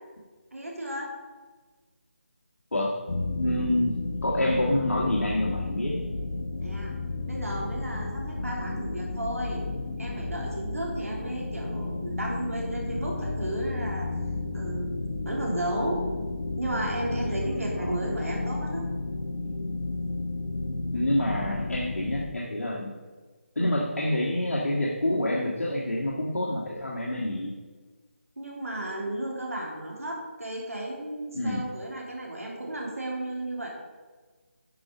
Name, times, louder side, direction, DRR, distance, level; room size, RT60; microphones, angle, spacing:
voice 1, 0.5-1.1 6.6-6.9 7.2-9.6 10.0-14.1 14.5-15.0 15.2-16.0 16.6-18.9 28.4-33.7, right 1 dB, 85° right, -2 dB, 3.2 m, -33 dB
sound 1, 3.1-22.3, left 2 dB, 55° left, 1.2 m, -32 dB
voice 2, 3.4-4.0 4.2-6.0 17.5-18.0 20.9-22.9 23.5-27.5 31.3-31.6, left 1 dB, 75° left, -3 dB, 1.6 m, -27 dB
10.5 x 5.1 x 5.3 m, 1.4 s
figure-of-eight pair, 155°, 7 cm